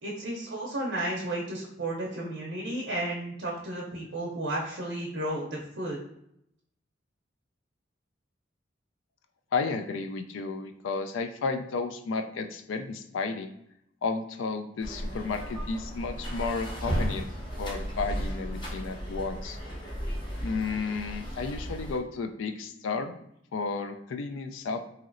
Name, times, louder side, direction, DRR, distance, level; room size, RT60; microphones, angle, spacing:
voice 1, 0.0-6.0, right 1 dB, 65° right, -3 dB, 0.5 m, -33 dB
voice 2, 9.5-13.5 14.0-17.3 17.6-19.6 20.4-23.2 23.5-24.8, left 4 dB, 75° left, 8 dB, 0.3 m, -32 dB
sound 1, 14.8-22.0, equal, 25° left, 0.6 m, -35 dB
3.0 x 2.8 x 2.5 m, 0.76 s
head